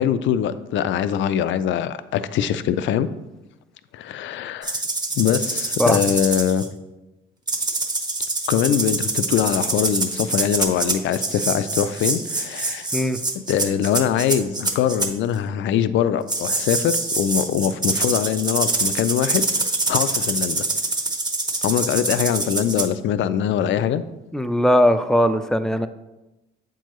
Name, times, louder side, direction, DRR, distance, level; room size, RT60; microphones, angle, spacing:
voice 1, 0.0-3.1 3.9-4.8 5.1-6.7 8.5-12.9 13.5-19.5 19.9-20.7 21.6-24.0, left 9 dB, 70° left, 13 dB, 0.4 m, -22 dB
sound 1, 4.6-6.7 7.5-15.1 16.3-22.8, right 2 dB, 20° right, 0.8 m, -25 dB
voice 2, 24.3-25.9, equal, 5° left, 10 dB, 0.3 m, -19 dB
7.5 x 4.6 x 3.0 m, 1.0 s
cardioid pair, 90°, 20 cm